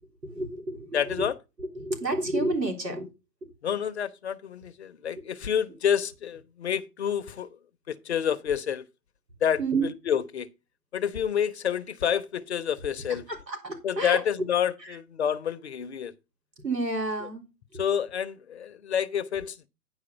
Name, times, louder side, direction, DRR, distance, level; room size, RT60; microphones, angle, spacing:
voice 1, 0.2-1.3 1.6-3.1 9.6-9.9 13.1-14.2 14.8-15.0 16.6-17.4, right 2 dB, 85° right, 3.8 m, -30 dB
voice 2, 0.9-1.3 3.6-7.5 7.9-8.9 9.4-9.6 10.1-10.5 10.9-13.2 13.8-16.1 17.8-19.7, left 8 dB, 45° left, 0.7 m, -28 dB
9.7 x 4.8 x 5.5 m
figure-of-eight pair, 135°, 49 cm